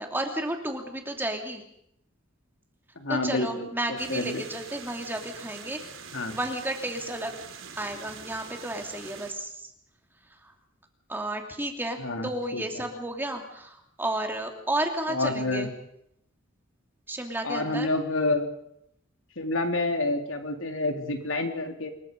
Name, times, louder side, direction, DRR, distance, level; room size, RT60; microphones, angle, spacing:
voice 1, 0.0-1.6 3.1-5.9 6.3-7.3 7.8-9.6 11.1-15.7 17.1-17.9, right 1 dB, 10° right, 3 dB, 3.0 m, -32 dB
voice 2, 2.9-4.4 6.1-6.3 12.0-12.8 15.1-15.7 17.4-18.5 19.4-21.9, left 2 dB, 75° left, 4 dB, 3.4 m, -28 dB
sound 1, 4.0-9.3, right 6 dB, 80° right, 3.4 m, -44 dB
27.5 x 23.0 x 5.4 m, 0.73 s
head